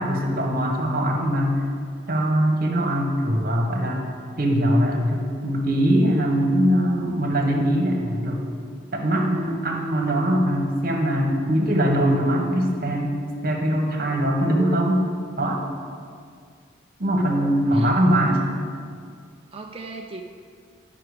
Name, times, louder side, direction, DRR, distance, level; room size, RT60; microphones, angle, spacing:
voice 1, 0.0-1.6 2.1-4.0 4.4-8.4 8.9-13.1 13.4-15.0 15.4-15.6 17.0-18.5, equal, 50° right, 1 dB, 1.4 m, -22 dB
voice 2, 17.6-18.2 19.5-20.2, right 3 dB, 30° right, 1 dB, 0.5 m, -37 dB
11.0 x 5.9 x 4.9 m, 2.2 s
head